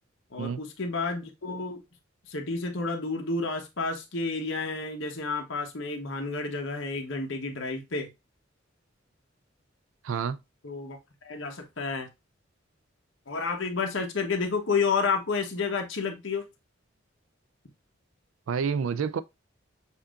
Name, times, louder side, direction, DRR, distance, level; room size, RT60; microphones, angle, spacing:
voice 1, 0.3-1.8 2.3-8.1 10.6-11.0 11.2-12.1 13.3-16.4, left 4 dB, 75° left, 1.0 m, -30 dB
voice 2, 10.0-10.4 18.5-19.2, right 6 dB, 90° right, 0.4 m, -28 dB
6.8 x 2.6 x 2.4 m
head